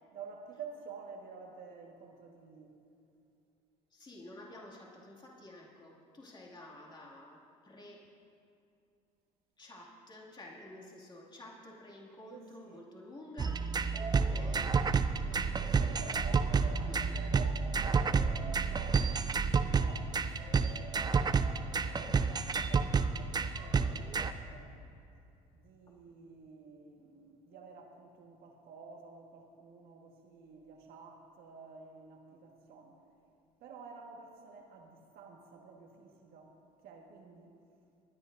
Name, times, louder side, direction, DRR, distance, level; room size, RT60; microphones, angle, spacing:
voice 1, 0.1-2.8 12.2-12.8 13.9-14.4 15.8-21.0 21.7-24.7 25.5-33.0 33.6-36.6 36.8-37.5, right 5 dB, 70° right, 1 dB, 1.6 m, -51 dB
voice 2, 3.9-8.1 9.6-14.8 15.2-16.2 16.8-17.1 25.9-26.0, left 1 dB, 25° left, -3 dB, 2.3 m, -51 dB
sound 1, 13.4-24.3, right 5 dB, 25° right, 0.5 m, -30 dB
23.5 x 9.8 x 2.6 m, 2.6 s
supercardioid pair, 75°, 17 cm